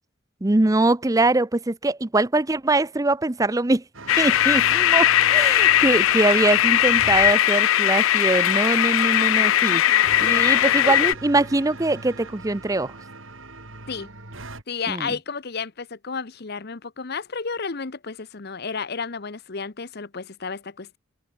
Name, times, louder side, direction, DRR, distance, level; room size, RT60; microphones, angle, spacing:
voice 1, 0.4-3.8 4.2-9.8 10.2-12.9 14.9-15.1, right 2 dB, 15° right, 0.6 m, -22 dB
sound 1, 3.9-7.3 10.0-14.6, right 2 dB, 80° right, 5.0 m, -40 dB
sound 2, 4.1-11.1, left 12 dB, 80° left, 0.4 m, -19 dB
voice 2, 9.2-11.1 13.9-14.1 14.7-21.0, left 5 dB, 50° left, 0.9 m, -32 dB
head